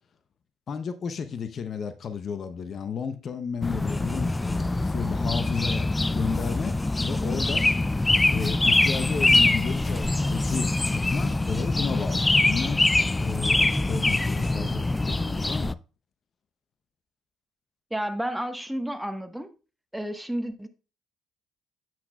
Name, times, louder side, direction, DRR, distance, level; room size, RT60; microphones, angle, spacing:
voice 1, 0.7-6.8 7.0-7.6 8.3-12.8 13.2-15.8, left 6 dB, 50° left, 0.8 m, -33 dB
sound 1, 3.6-15.7, left 2 dB, 15° left, 0.3 m, -24 dB
voice 2, 17.9-19.5 19.9-20.7, right 1 dB, 5° right, 1.3 m, -31 dB
10.5 x 7.9 x 2.3 m
hypercardioid pair, 50°, 0 cm